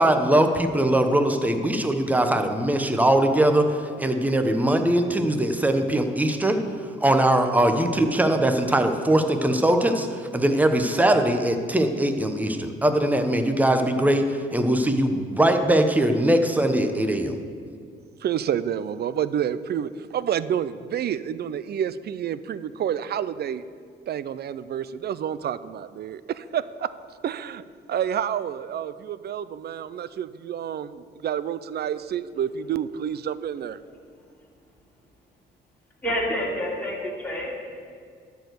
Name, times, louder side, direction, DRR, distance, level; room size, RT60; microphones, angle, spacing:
voice 1, 0.0-6.6 7.0-17.3, right 1 dB, 10° right, 6 dB, 0.9 m, -21 dB
voice 2, 18.2-23.6 24.1-26.9 27.2-27.6 27.9-33.8, right 9 dB, 55° right, 15 dB, 0.5 m, -29 dB
voice 3, 36.0-37.8, equal, 10° left, -4 dB, 3.0 m, -28 dB
12.5 x 4.6 x 8.1 m, 2.1 s
cardioid pair, 90°, 20 cm